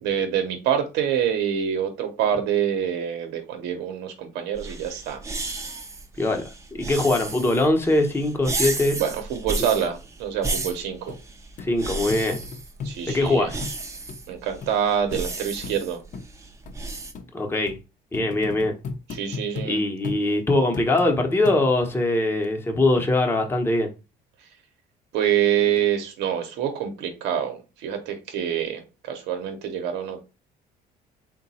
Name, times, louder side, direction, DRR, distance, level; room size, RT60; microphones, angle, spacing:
voice 1, 0.0-5.2 9.0-11.2 12.8-13.5 14.3-16.0 19.1-19.8 24.4-24.5 25.1-30.2, right 9 dB, 85° right, 0.8 m, -26 dB
sound 1, 4.5-17.1, right 3 dB, 15° right, 0.6 m, -33 dB
voice 2, 6.2-9.0 9.6-9.7 11.6-12.4 13.1-13.6 17.3-17.8 18.1-18.7 19.7-23.9, left 2 dB, 15° left, 0.9 m, -22 dB
sound 2, 10.6-10.7 11.1-11.2 11.6-11.7 12.1-13.2 13.6-13.8 14.1-14.2 14.6-14.7 15.1-15.3 15.6-15.8 16.1-16.3 16.7-16.8 17.1-17.3 17.7-17.8 18.1-19.7 20.0-20.2 20.7-21.1 21.5-21.9 22.4-22.5, left 4 dB, 50° left, 0.7 m, -35 dB
3.8 x 2.2 x 4.1 m
cardioid pair, 110°, 17 cm